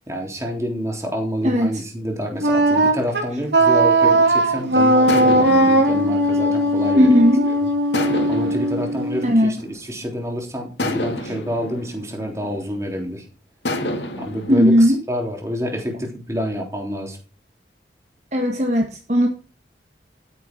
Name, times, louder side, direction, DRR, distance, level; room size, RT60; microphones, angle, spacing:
voice 1, 0.1-7.5 8.3-13.2 14.2-17.2, equal, 15° right, 1 dB, 3.4 m, -28 dB
voice 2, 1.4-1.8 7.0-7.4 9.2-9.5 14.5-15.0 18.3-19.3, equal, 40° right, 3 dB, 1.6 m, -16 dB
Wind instrument woodwind instrument, 2.4-9.4, right 1 dB, 75° right, 3.0 m, -18 dB
sound 1, 5.1-7.3 7.9-10.1 10.8-13.0 13.6-14.7, left 1 dB, 75° left, 2.5 m, -30 dB
13.0 x 9.3 x 4.6 m, 0.35 s
head